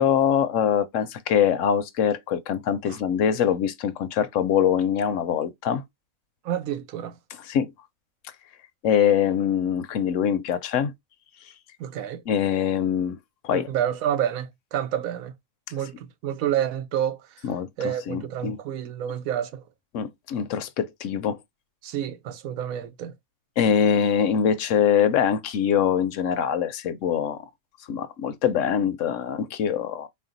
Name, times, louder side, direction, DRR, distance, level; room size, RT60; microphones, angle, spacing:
voice 1, 0.0-5.8 7.5-7.7 8.8-10.9 12.3-13.2 13.4-13.7 17.4-18.6 19.9-21.4 23.6-27.5 27.9-30.1, left 8 dB, 70° left, 0.9 m, -23 dB
voice 2, 6.4-7.1 11.8-12.2 13.5-15.3 15.7-17.4 17.8-19.6 21.8-23.1, right 10 dB, 85° right, 1.1 m, -29 dB
4.2 x 2.2 x 3.8 m
omnidirectional pair, 1.4 m